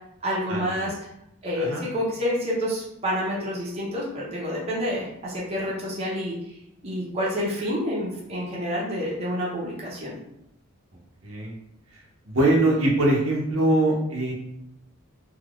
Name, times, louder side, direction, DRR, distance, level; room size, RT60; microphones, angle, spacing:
voice 1, 0.2-1.0 1.4-6.6 6.8-10.2, equal, 30° right, -6 dB, 0.8 m, -28 dB
voice 2, 12.3-14.3, right 1 dB, 70° right, -2 dB, 0.8 m, -22 dB
3.4 x 2.8 x 2.4 m, 0.79 s
head